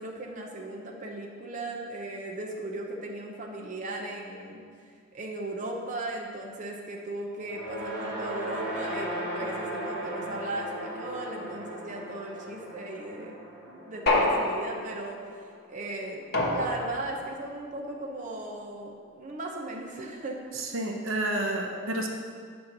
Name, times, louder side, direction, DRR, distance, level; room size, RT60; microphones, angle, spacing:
voice 1, 0.0-4.6 5.1-15.2 15.7-20.4, right 2 dB, 40° right, -1 dB, 0.9 m, -37 dB
sound 1, 7.4-15.8, right 1 dB, 5° right, 1.8 m, -37 dB
sound 2, 14.1-15.1 16.3-17.2, left 2 dB, 50° left, 1.1 m, -26 dB
voice 2, 20.7-22.1, right 1 dB, 80° right, 2 dB, 0.9 m, -29 dB
8.3 x 4.4 x 6.6 m, 2.1 s
head